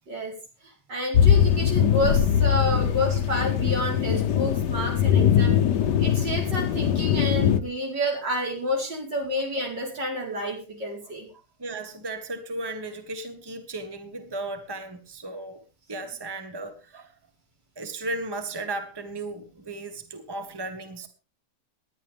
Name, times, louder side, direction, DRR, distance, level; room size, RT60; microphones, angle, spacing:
voice 1, 0.6-5.6 6.0-11.3, equal, 80° right, 5.1 m, -29 dB
sound 1, 1.1-7.6, left 9 dB, 75° left, 1.4 m, -21 dB
voice 2, 11.6-15.6 15.9-17.1 17.8-21.1, right 2 dB, 15° right, 1.6 m, -35 dB
19.5 x 11.0 x 3.5 m
omnidirectional pair, 1.9 m